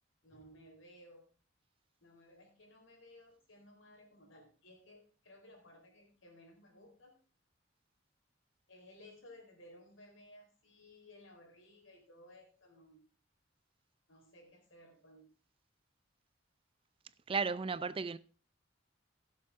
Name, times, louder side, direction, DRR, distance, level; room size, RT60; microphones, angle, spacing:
voice 1, 0.2-1.3 2.0-7.2 8.7-13.0 14.1-15.3, left 1 dB, 85° left, 4.0 m, -58 dB
voice 2, 17.3-18.2, right 5 dB, 30° right, 0.4 m, -34 dB
16.0 x 7.4 x 3.5 m
head